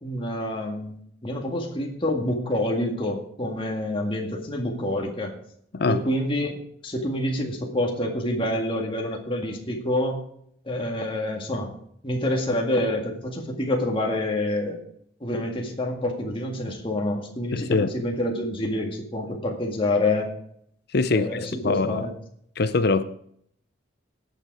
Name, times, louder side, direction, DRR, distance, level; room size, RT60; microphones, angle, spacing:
voice 1, 0.0-5.3 5.9-6.6 6.8-10.2 10.7-11.7 12.0-14.8 15.2-20.3 21.1-22.1, left 1 dB, 25° left, 2.0 m, -27 dB
voice 2, 17.5-17.9 20.9-22.0 22.6-23.0, left 3 dB, 55° left, 0.6 m, -23 dB
18.0 x 6.6 x 4.9 m
head